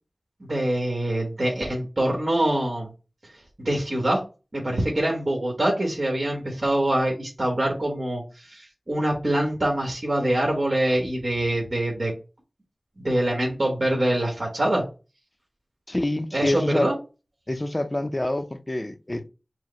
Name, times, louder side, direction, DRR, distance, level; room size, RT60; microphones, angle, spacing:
voice 1, 0.5-2.9 3.6-4.2 4.5-12.1 13.0-14.8 16.3-16.9, right 1 dB, 60° right, 1.4 m, -24 dB
voice 2, 15.9-16.9 17.5-19.3, left 1 dB, 35° left, 0.5 m, -26 dB
4.7 x 2.1 x 4.3 m
wide cardioid pair, 40°, 0 cm